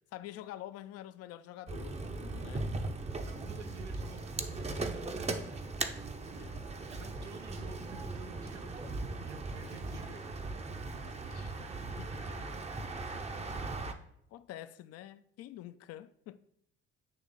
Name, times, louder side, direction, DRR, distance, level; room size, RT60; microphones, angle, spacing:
voice 1, 0.1-2.7 6.3-6.6 10.9-11.7 12.0-12.5 13.5-13.6 14.3-16.5, left 13 dB, 45° left, 0.4 m, -48 dB
sound 1, 1.7-13.9, right 3 dB, 20° right, 0.6 m, -39 dB
voice 2, 3.2-5.6 6.9-10.3, right 4 dB, 90° right, 0.6 m, -51 dB
8.6 x 3.1 x 3.7 m
figure-of-eight pair, 50°, 34 cm